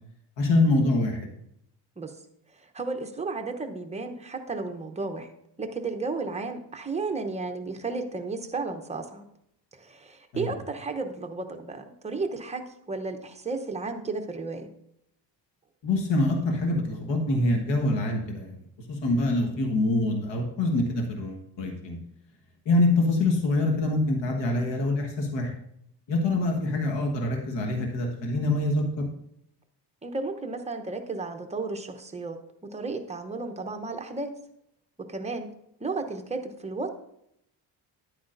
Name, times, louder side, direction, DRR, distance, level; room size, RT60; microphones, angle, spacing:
voice 1, 0.4-1.3 10.3-10.5 15.8-18.6 18.9-22.0 22.6-25.5 26.1-29.1, left 2 dB, 70° left, 2 dB, 1.5 m, -25 dB
voice 2, 2.6-5.3 5.6-9.2 9.7-14.7 30.0-32.4 32.6-34.3 35.0-35.5 35.8-36.9, right 3 dB, 15° right, 5 dB, 0.8 m, -33 dB
10.5 x 8.5 x 2.6 m, 0.76 s
cardioid pair, 135°, 44 cm